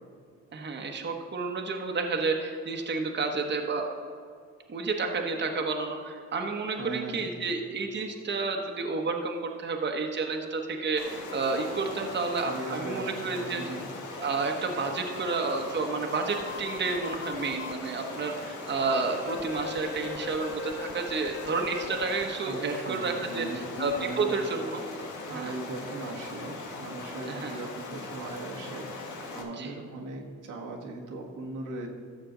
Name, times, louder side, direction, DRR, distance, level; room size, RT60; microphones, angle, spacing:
voice 1, 0.5-3.9 4.7-13.6 14.2-24.8 25.3-25.5 27.3-27.6 29.5-29.7, right 4 dB, 35° right, 3 dB, 1.1 m, -30 dB
voice 2, 6.7-7.3 12.5-13.9 22.4-23.6 23.9-24.3 25.3-29.1 29.3-31.9, right 2 dB, 80° right, 0 dB, 1.5 m, -39 dB
Stream, 11.0-29.4, left 3 dB, 70° left, 1.7 m, -40 dB
sound 1, 16.3-17.7 19.3-22.2 23.8-24.0, left 7 dB, 40° left, 0.4 m, -39 dB
14.0 x 6.7 x 3.9 m, 2.3 s
cardioid pair, 90°, 30 cm